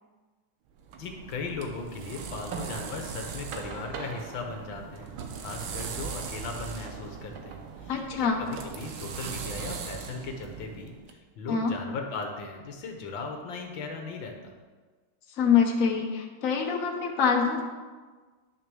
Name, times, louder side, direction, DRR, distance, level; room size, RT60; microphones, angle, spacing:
sound 1, 0.8-11.1, right 6 dB, 85° right, 1.8 m, -39 dB
voice 1, 1.0-14.5, left 3 dB, 70° left, 3 dB, 1.8 m, -38 dB
voice 2, 7.9-8.4 11.5-11.7 15.4-17.6, left 6 dB, 45° left, 1 dB, 1.5 m, -25 dB
10.5 x 6.4 x 6.3 m, 1.4 s
omnidirectional pair, 2.2 m